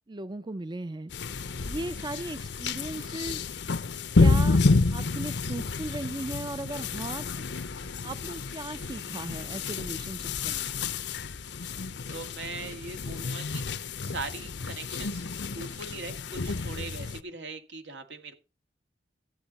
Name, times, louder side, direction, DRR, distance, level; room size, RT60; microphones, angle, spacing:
voice 1, 0.1-1.1 1.7-3.5 4.2-4.6 4.9-7.4 8.0-10.9, right 2 dB, 25° right, 0.6 m, -37 dB
sound 1, 1.1-17.2, left 3 dB, 75° left, 0.8 m, -29 dB
voice 2, 12.1-13.6 14.1-15.3 15.5-18.3, right 3 dB, 80° right, 2.2 m, -40 dB
13.5 x 8.9 x 4.1 m
head